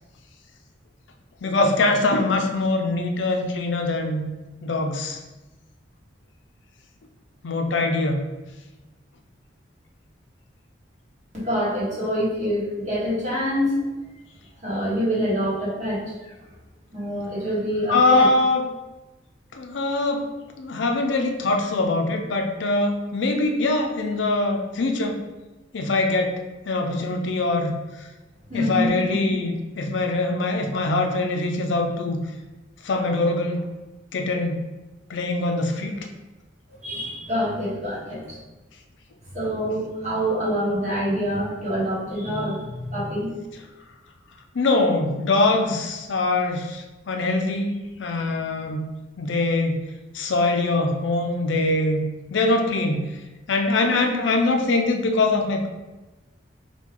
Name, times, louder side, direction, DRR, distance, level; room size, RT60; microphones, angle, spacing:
voice 1, 1.4-4.2 4.6-5.2 7.4-8.2 17.9-18.7 19.5-20.3 20.6-25.2 25.7-27.7 28.5-32.2 32.8-33.7 34.1-34.6 35.1-36.1 44.5-48.8 49.2-49.8 50.1-52.0 52.3-53.0 53.5-55.7, left 2 dB, 70° left, 4 dB, 0.5 m, -23 dB
voice 2, 11.3-13.8 14.6-16.0 16.9-18.2 28.5-29.2 36.8-38.4 39.3-43.3, equal, 40° right, -6 dB, 1.5 m, -26 dB
4.6 x 2.2 x 3.6 m, 1.1 s
head